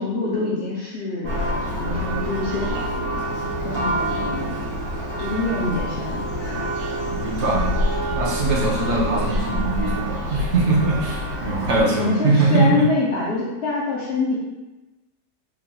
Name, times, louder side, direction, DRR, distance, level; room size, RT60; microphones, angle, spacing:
voice 1, 0.0-1.4 1.8-3.1 3.6-4.7 5.2-6.6 12.0-14.4, left 3 dB, 60° left, -6 dB, 0.6 m, -25 dB
Church bell, 1.2-11.8, equal, 85° right, 1.6 m, -26 dB
voice 2, 3.7-4.3 7.1-7.7 8.1-12.8, right 3 dB, 60° right, -3 dB, 0.8 m, -22 dB
3.4 x 2.0 x 3.7 m, 1.1 s
omnidirectional pair, 1.6 m